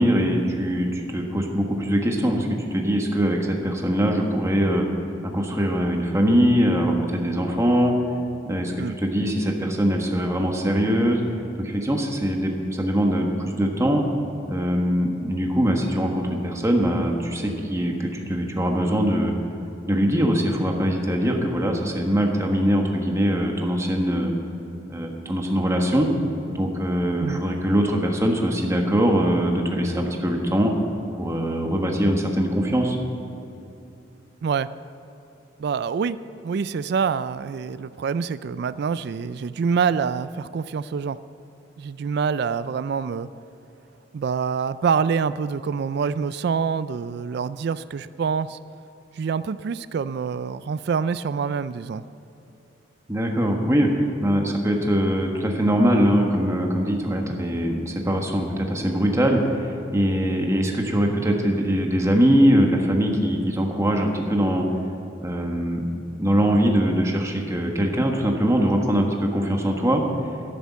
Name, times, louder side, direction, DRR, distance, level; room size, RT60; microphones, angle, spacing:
voice 1, 0.0-8.1 8.5-11.2 11.6-14.1 14.5-19.3 19.9-24.3 24.9-26.1 26.5-30.7 31.2-33.0 53.1-64.6 65.2-65.8 66.2-70.0, equal, 15° right, 2 dB, 1.4 m, -22 dB
voice 2, 35.6-41.2 41.8-43.3 44.1-48.6 49.2-52.0, right 6 dB, 60° right, 15 dB, 0.3 m, -26 dB
11.0 x 10.5 x 7.3 m, 2.9 s
head